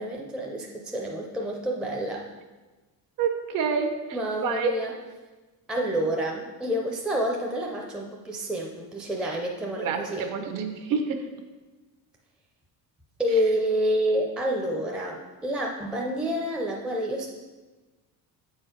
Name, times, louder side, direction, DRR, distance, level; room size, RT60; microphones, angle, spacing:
voice 1, 0.0-2.2 4.1-4.9 5.7-10.3 13.2-17.3, equal, 5° right, -1 dB, 0.4 m, -28 dB
voice 2, 3.2-3.9 4.4-4.7 9.8-11.2, right 5 dB, 65° right, 6 dB, 1.0 m, -27 dB
7.5 x 4.5 x 5.0 m, 1.2 s
cardioid pair, 170°, 36 cm